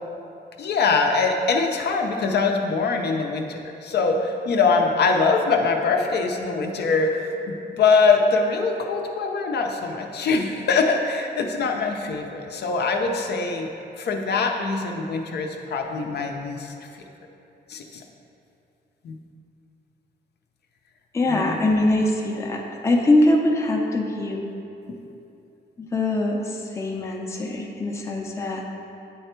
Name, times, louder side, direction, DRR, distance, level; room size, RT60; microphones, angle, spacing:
voice 1, 0.6-13.7 14.0-16.7 17.7-18.0 19.0-19.2 21.3-21.6 24.9-25.0, left 4 dB, 65° left, 3 dB, 0.5 m, -23 dB
voice 2, 21.1-24.4 25.8-28.6, left 1 dB, 15° left, 0 dB, 0.5 m, -22 dB
9.2 x 3.3 x 4.4 m, 2.7 s
wide cardioid pair, 180°, 18 cm